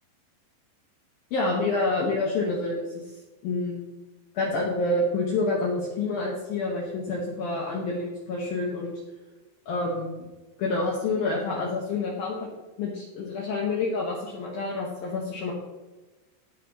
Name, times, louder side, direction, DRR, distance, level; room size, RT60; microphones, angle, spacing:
voice 1, 1.3-2.8 3.4-3.9 4.3-9.0 9.7-10.3 10.6-12.5 12.8-15.5, left 2 dB, 65° left, -3 dB, 2.7 m, -28 dB
16.5 x 6.1 x 3.1 m, 1.1 s
omnidirectional pair, 5.4 m